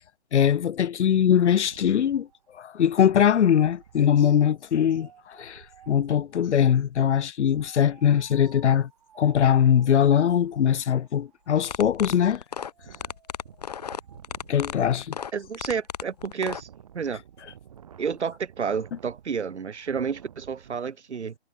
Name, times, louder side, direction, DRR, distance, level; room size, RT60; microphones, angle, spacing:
voice 1, 0.3-2.3 2.6-8.9 9.2-12.4 14.5-15.1, left 9 dB, 85° left, 0.5 m, -21 dB
Wind, 1.1-6.5 7.5-20.8, right 9 dB, 30° right, 5.7 m, -53 dB
sound 1, 11.5-16.6, left 7 dB, 35° left, 1.5 m, -34 dB
voice 2, 15.3-16.7 16.9-17.2 18.0-21.3, right 6 dB, 80° right, 1.1 m, -30 dB
hypercardioid pair, 165°, 34 cm